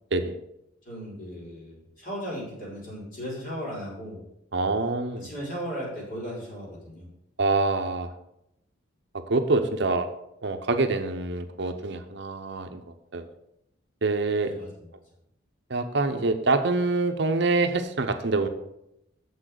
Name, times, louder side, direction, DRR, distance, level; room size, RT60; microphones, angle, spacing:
voice 1, 0.8-4.2 5.2-7.1 14.4-14.7, equal, 45° left, -5 dB, 4.2 m, -36 dB
voice 2, 4.5-5.3 7.4-8.1 9.3-10.1 10.4-12.8 13.1-13.2 14.0-14.5 15.7-18.5, right 3 dB, 60° right, 8 dB, 0.8 m, -25 dB
7.3 x 6.2 x 6.7 m, 0.81 s
head